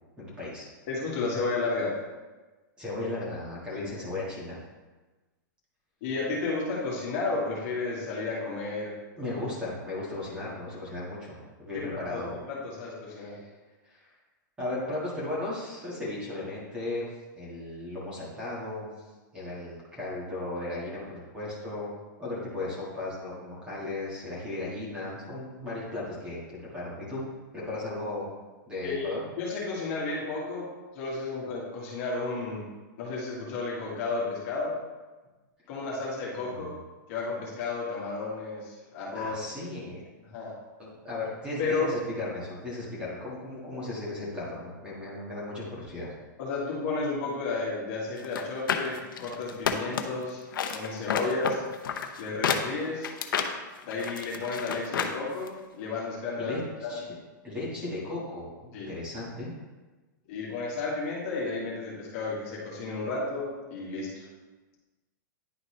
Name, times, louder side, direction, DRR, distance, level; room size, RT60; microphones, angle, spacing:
voice 1, 0.2-0.7 2.8-4.6 9.2-12.4 13.1-13.5 13.8-14.1 14.6-18.9 19.3-21.9 22.2-27.2 27.5-28.3 28.7-29.3 36.3-36.8 39.1-40.0 40.8-46.1 56.4-57.1 57.4-59.5, left 2 dB, 10° right, -7 dB, 1.7 m, -36 dB
voice 2, 0.9-1.9 3.7-3.9 6.0-8.9 11.7-13.4 28.8-30.7 31.0-32.7 33.0-34.8 35.7-36.8 37.1-39.4 40.2-40.5 41.6-42.0 46.4-50.4 50.7-51.6 52.2-53.1 53.8-56.9 58.7-58.9 60.3-64.3, left 3 dB, 40° left, -5 dB, 1.8 m, -32 dB
sound 1, 48.2-50.2 50.5-55.2 55.5-55.6, left 7 dB, 90° left, 0.7 m, -30 dB
10.0 x 3.9 x 3.2 m, 1.2 s
supercardioid pair, 165°, 11 cm